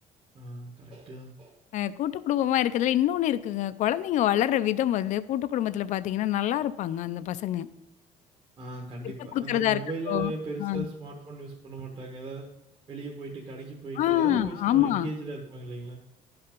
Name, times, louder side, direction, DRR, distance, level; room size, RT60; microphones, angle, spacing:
voice 1, 0.3-1.5 8.6-12.5 12.9-16.0, right 2 dB, 35° right, -1 dB, 1.3 m, -38 dB
voice 2, 1.7-7.7 9.3-9.8 10.1-10.3 10.6-10.9 14.0-15.1, left 12 dB, 55° left, 15 dB, 0.5 m, -26 dB
11.5 x 5.7 x 5.2 m, 0.94 s
cardioid pair, 155°, 15 cm